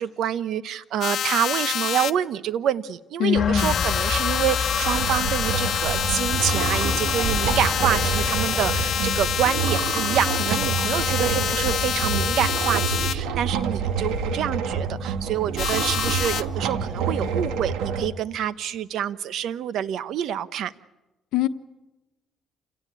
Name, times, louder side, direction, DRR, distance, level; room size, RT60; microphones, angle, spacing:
voice 1, 0.0-20.7, right 10 dB, 75° right, 14 dB, 0.8 m, -27 dB
sound 1, 1.0-2.1 3.6-13.1 15.6-16.4, left 10 dB, 65° left, 1.0 m, -27 dB
voice 2, 3.2-3.8 21.3-21.5, left 9 dB, 85° left, 10 dB, 1.1 m, -22 dB
sound 2, 3.3-12.7, left 5 dB, 35° left, 2.2 m, -31 dB
sound 3, 4.8-18.1, right 6 dB, 90° right, 2.2 m, -27 dB
29.0 x 17.5 x 9.7 m, 1.1 s
cardioid pair, 90°, 0 cm